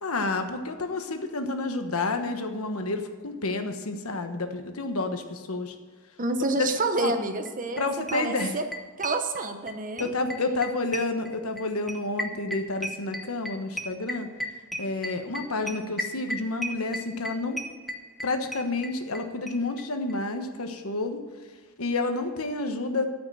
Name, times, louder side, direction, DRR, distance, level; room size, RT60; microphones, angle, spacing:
voice 1, 0.0-5.7 6.6-6.7 7.0-7.1 7.8-8.6 10.0-14.3 14.8-17.6 18.2-21.2 21.8-23.0, left 3 dB, 65° left, 6 dB, 1.3 m, -29 dB
voice 2, 6.2-7.8 8.1-8.6 9.0-10.1, right 2 dB, 35° right, 7 dB, 1.0 m, -28 dB
sound 1, 7.4-7.5 7.8-7.9 8.1-9.7 10.0-19.2 19.5-19.6 19.8-19.9 20.1-20.2, equal, ahead, 1.0 m, -34 dB
13.0 x 5.9 x 9.0 m, 1.5 s
head